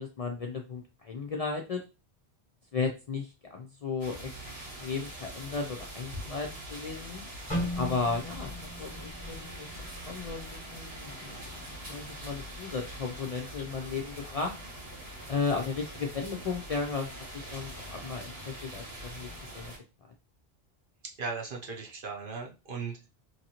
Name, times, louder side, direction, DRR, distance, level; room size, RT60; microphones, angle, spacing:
voice 1, 0.0-1.8 2.7-4.3 4.8-7.2 7.8-8.5 8.8-9.7 10.1-14.5 15.3-19.7 20.0-20.1, left 4 dB, 50° left, 1 dB, 0.4 m, -35 dB
sound 1, 4.0-19.8, equal, 75° right, 1.5 m, -43 dB
sound 2, 7.5-11.5 11.9-12.1 12.8-13.1, equal, 5° left, 1.1 m, -38 dB
voice 2, 21.2-23.1, right 4 dB, 60° right, 0 dB, 0.9 m, -37 dB
3.0 x 2.7 x 2.8 m, 0.29 s
omnidirectional pair, 1.1 m